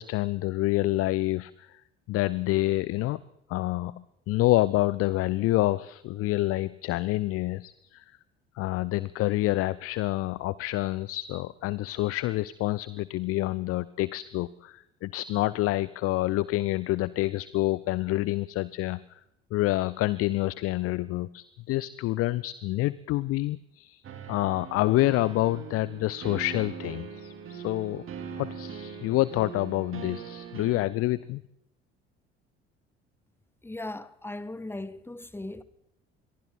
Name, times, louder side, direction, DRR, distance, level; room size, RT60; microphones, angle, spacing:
voice 1, 0.0-1.8 2.1-3.2 3.5-8.0 8.6-19.2 19.5-28.0 28.4-31.4, left 17 dB, 45° left, 0.7 m, -28 dB
sound 1, 24.0-30.8, right 7 dB, 40° right, 3.9 m, -41 dB
voice 2, 33.6-35.6, left 2 dB, 5° left, 1.3 m, -38 dB
27.0 x 22.5 x 4.3 m
figure-of-eight pair, 55°, 33 cm